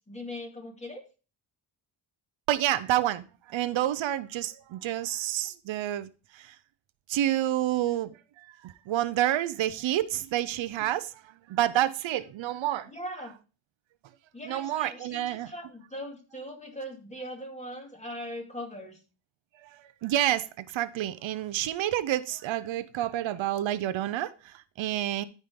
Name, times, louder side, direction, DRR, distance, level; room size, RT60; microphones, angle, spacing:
voice 1, 0.1-1.0 12.9-13.4 14.3-19.0, equal, 15° left, 2.4 m, -40 dB
voice 2, 2.5-6.1 6.3-6.6 7.1-8.1 8.4-11.1 11.5-12.9 14.5-15.5 19.6-19.7 20.0-25.3, right 13 dB, 75° right, 0.7 m, -29 dB
13.5 x 5.2 x 3.7 m
cardioid pair, 115°, 46 cm